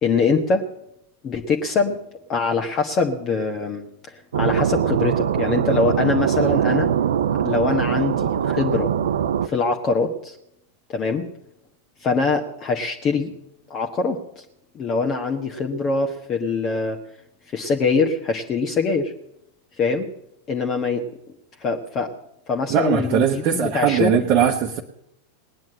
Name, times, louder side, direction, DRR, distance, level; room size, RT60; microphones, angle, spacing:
voice 1, 0.0-0.6 1.2-2.0 2.3-6.9 7.4-8.9 9.4-10.4 10.9-11.2 12.0-13.3 13.7-14.2 14.7-17.0 17.5-19.1 19.8-20.1 20.5-21.0 21.6-22.1 22.5-24.2, left 4 dB, 30° left, 2 dB, 1.3 m, -23 dB
sound 1, 4.3-9.5, right 9 dB, 60° right, 0.7 m, -22 dB
voice 2, 22.7-24.8, right 9 dB, 40° right, 1 dB, 1.1 m, -20 dB
19.5 x 9.3 x 7.7 m, 0.79 s
figure-of-eight pair, 90°, 0 cm